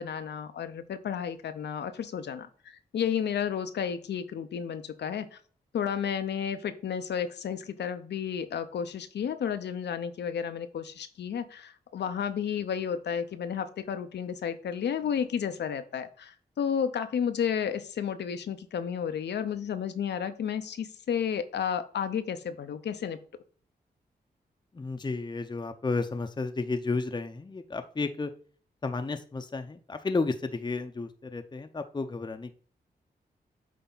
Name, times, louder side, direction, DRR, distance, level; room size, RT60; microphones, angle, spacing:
voice 1, 0.0-5.4 5.7-23.2, left 8 dB, 80° left, 10 dB, 0.6 m, -32 dB
voice 2, 24.7-28.3 28.8-32.5, left 3 dB, 25° left, 6 dB, 0.6 m, -32 dB
8.2 x 3.4 x 3.9 m, 0.43 s
cardioid pair, 55°, 17 cm